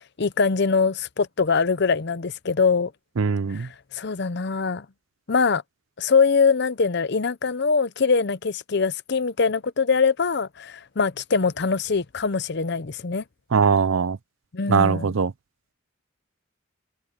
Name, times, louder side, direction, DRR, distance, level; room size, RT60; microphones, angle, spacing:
voice 1, 0.2-2.9 3.5-4.9 5.3-5.6 6.0-13.2 14.5-15.1, left 5 dB, 55° left, 0.7 m, -23 dB
voice 2, 3.2-3.7 13.5-14.2 14.7-15.3, right 5 dB, 80° right, 0.6 m, -21 dB
head